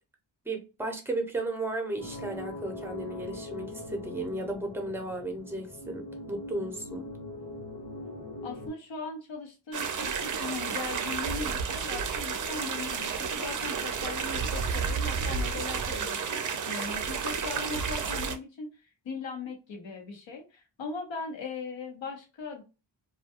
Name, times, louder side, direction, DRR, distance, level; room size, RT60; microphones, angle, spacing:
voice 1, 0.5-7.1, right 2 dB, 5° right, 0.6 m, -34 dB
sound 1, 2.0-8.7, left 2 dB, 60° left, 1.3 m, -41 dB
voice 2, 8.4-22.6, left 4 dB, 75° left, 1.0 m, -39 dB
sound 2, 9.7-18.4, right 6 dB, 45° right, 0.5 m, -31 dB
2.3 x 2.2 x 2.8 m
wide cardioid pair, 90°, 46 cm